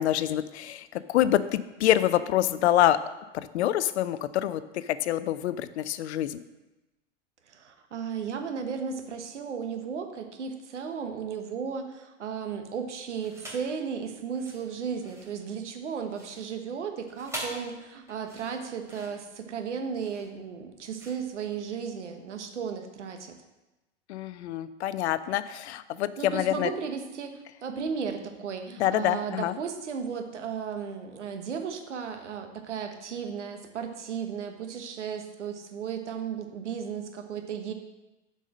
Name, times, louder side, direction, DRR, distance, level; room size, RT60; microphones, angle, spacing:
voice 1, 0.0-3.0 3.3-6.4 24.1-26.7 28.8-29.6, left 12 dB, 70° left, 14 dB, 0.6 m, -26 dB
voice 2, 7.5-23.3 26.2-37.7, right 6 dB, 80° right, 6 dB, 1.2 m, -35 dB
sound 1, 13.2-13.7 14.3-22.1, right 1 dB, 10° right, 2.8 m, -44 dB
7.4 x 5.4 x 6.2 m, 1.0 s
hypercardioid pair, 95°, 35 cm